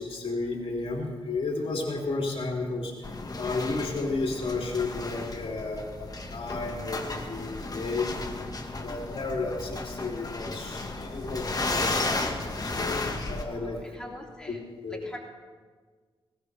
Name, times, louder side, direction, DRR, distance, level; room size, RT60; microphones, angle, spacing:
voice 1, 0.0-8.1 8.8-13.8 14.5-14.6 14.8-15.0, left 3 dB, 60° left, -1 dB, 3.0 m, -33 dB
sound 1, 3.0-13.4, left 2 dB, 35° left, 1.7 m, -34 dB
voice 2, 13.4-14.6 14.9-15.2, left 1 dB, 10° left, -3 dB, 3.3 m, -43 dB
20.0 x 17.5 x 3.4 m, 1.5 s
cardioid pair, 65°, 11 cm